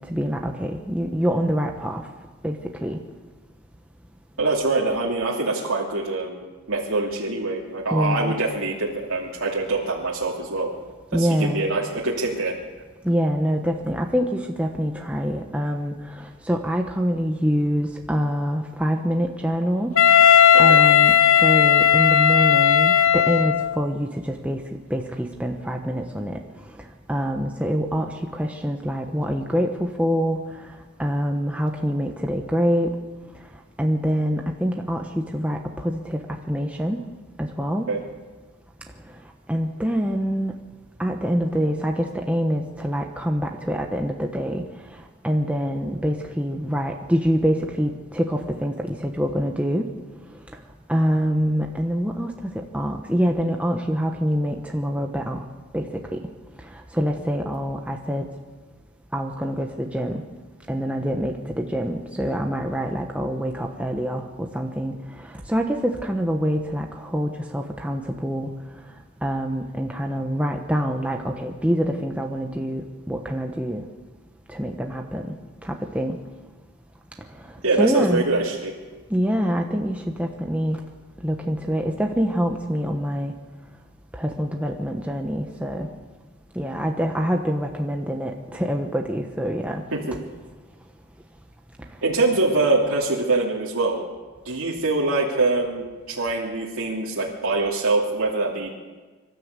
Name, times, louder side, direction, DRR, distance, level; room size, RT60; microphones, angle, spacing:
voice 1, 0.1-2.0 2.4-3.0 7.9-8.3 11.1-11.6 13.0-19.9 20.6-21.1 21.4-24.6 24.9-26.4 27.1-30.4 31.0-32.9 33.8-36.2 36.5-37.0 37.4-37.9 39.5-40.5 41.0-44.6 45.2-49.9 50.9-55.4 55.7-56.2 56.9-58.3 59.1-60.2 60.7-64.9 65.2-68.5 69.2-73.8 74.5-75.3 75.6-76.2 77.8-78.2 79.1-80.8 81.2-83.3 84.1-85.9 86.5-89.8, equal, 5° right, 2 dB, 1.1 m, -25 dB
voice 2, 4.4-10.7 11.1-12.6 20.5-20.8 37.9-38.0 77.6-78.7 89.9-90.2 92.0-94.0 94.4-98.7, right 3 dB, 75° right, -5 dB, 2.8 m, -24 dB
Wind instrument woodwind instrument, 19.9-23.8, left 8 dB, 70° left, 0.8 m, -15 dB
25.5 x 13.0 x 8.2 m, 1.3 s
head